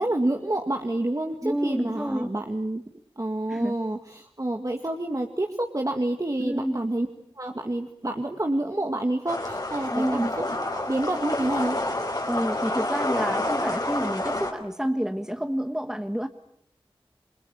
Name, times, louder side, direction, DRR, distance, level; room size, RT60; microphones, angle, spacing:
voice 1, 0.0-2.8 3.2-7.1 7.4-11.8, right 1 dB, 35° right, 3 dB, 2.0 m, -28 dB
voice 2, 1.4-2.3 3.5-3.8 6.4-6.8 9.9-10.3 12.3-16.3, equal, 5° right, 7 dB, 1.3 m, -29 dB
sound 1, 9.3-14.5, left 1 dB, 40° left, 4.9 m, -28 dB
28.5 x 22.5 x 8.6 m, 0.74 s
wide cardioid pair, 50°, 10 cm